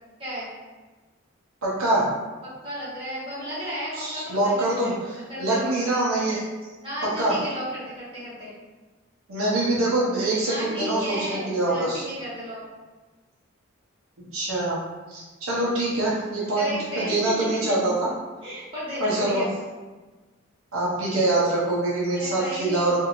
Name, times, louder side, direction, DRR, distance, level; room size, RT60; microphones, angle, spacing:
voice 1, 0.2-0.5 2.6-5.7 6.8-8.5 10.4-12.6 16.5-17.5 18.4-19.5 22.1-23.0, equal, 25° right, -11 dB, 1.3 m, -34 dB
voice 2, 1.6-2.1 3.9-6.4 7.2-7.4 9.3-12.0 14.3-14.8 15.1-18.1 19.0-19.4 20.7-23.0, right 2 dB, 90° right, -6 dB, 0.7 m, -24 dB
2.6 x 2.5 x 2.9 m, 1.3 s
head